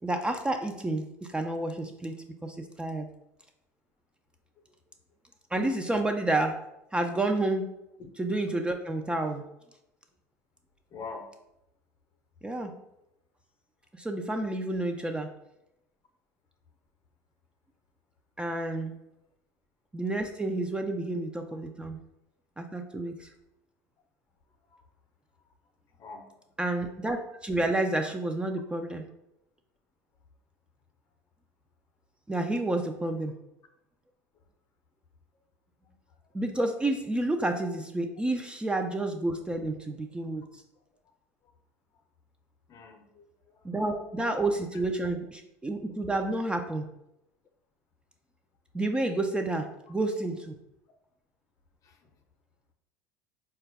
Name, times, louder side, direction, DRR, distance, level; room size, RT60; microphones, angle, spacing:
voice 1, 0.0-3.1 5.5-6.6 6.9-7.7 8.2-9.4 12.4-12.7 13.9-15.3 18.4-18.9 19.9-22.0 22.6-23.3 26.6-29.0 32.3-33.4 36.3-40.6 43.6-46.9 48.7-50.6, right 2 dB, 10° right, 4 dB, 0.3 m, -30 dB
voice 2, 10.9-11.3 24.7-24.8 26.0-26.3 33.0-33.2 42.7-43.6 51.8-52.0, left 4 dB, 45° left, 6 dB, 0.6 m, -44 dB
3.8 x 2.2 x 3.3 m, 0.85 s
hypercardioid pair, 75°, 8 cm